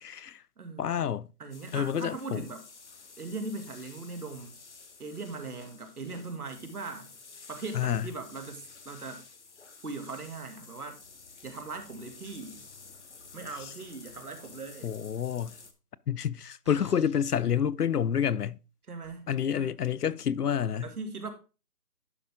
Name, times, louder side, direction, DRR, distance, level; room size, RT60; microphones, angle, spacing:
voice 1, 0.0-0.4 0.8-1.3 1.7-2.4 7.7-8.1 14.8-15.5 16.1-18.6 19.3-20.9, left 8 dB, 75° left, 0.6 m, -28 dB
voice 2, 0.6-1.0 1.4-2.6 3.2-4.6 5.0-7.1 7.5-9.2 9.8-11.0 11.4-12.7 13.3-14.9 18.9-19.3 19.5-19.7 20.8-21.3, right 3 dB, 70° right, 2.3 m, -39 dB
sound 1, 1.5-15.7, left 4 dB, 45° left, 1.0 m, -51 dB
sound 2, 16.6-17.5 19.0-19.1, equal, 20° right, 0.8 m, -52 dB
11.0 x 5.3 x 3.6 m
figure-of-eight pair, 170°, 48 cm